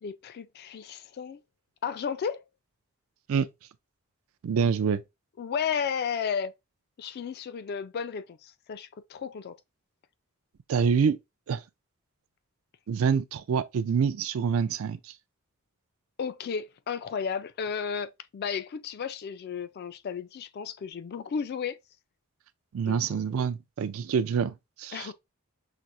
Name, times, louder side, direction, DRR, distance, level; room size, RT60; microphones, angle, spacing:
voice 1, 0.0-1.4 1.8-2.4 5.4-6.5 7.0-9.6 16.2-21.8 22.8-23.4 24.9-25.1, left 6 dB, 45° left, 0.3 m, -33 dB
voice 2, 4.4-5.0 10.7-11.2 11.5-11.6 12.9-15.1 22.7-25.1, right 6 dB, 65° right, 0.4 m, -26 dB
5.8 x 2.0 x 2.5 m
head